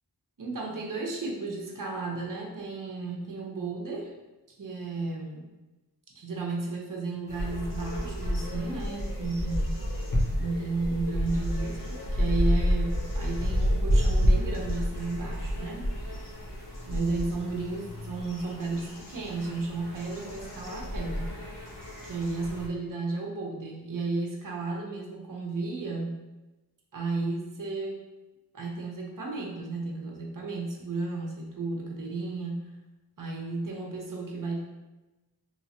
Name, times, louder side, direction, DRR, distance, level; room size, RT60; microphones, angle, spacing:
voice 1, 0.4-4.1 4.6-5.5 6.1-9.7 10.4-15.9 16.9-21.4 22.0-26.2 26.9-28.0 28.5-32.7 33.2-34.6, right 3 dB, 50° right, 0 dB, 0.8 m, -33 dB
sound 1, 7.3-22.7, equal, 55° left, 0.9 m, -30 dB
3.2 x 2.9 x 2.8 m, 1.1 s
wide cardioid pair, 60°, 40 cm